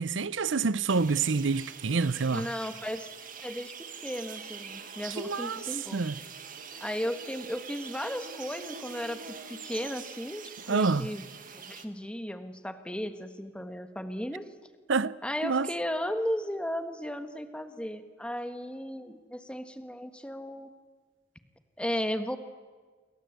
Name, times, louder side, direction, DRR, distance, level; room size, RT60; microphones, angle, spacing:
voice 1, 0.0-2.5 5.2-5.6 5.9-6.1 10.7-11.1 14.9-15.1 15.4-15.7, right 4 dB, 70° right, 0.7 m, -27 dB
sound 1, 0.9-11.8, right 6 dB, 45° right, 1.9 m, -44 dB
voice 2, 2.3-3.1 3.4-6.0 6.8-9.2 9.5-11.3 11.5-14.5 15.2-20.7 21.8-22.4, equal, 5° left, 1.5 m, -35 dB
28.5 x 23.5 x 8.1 m
head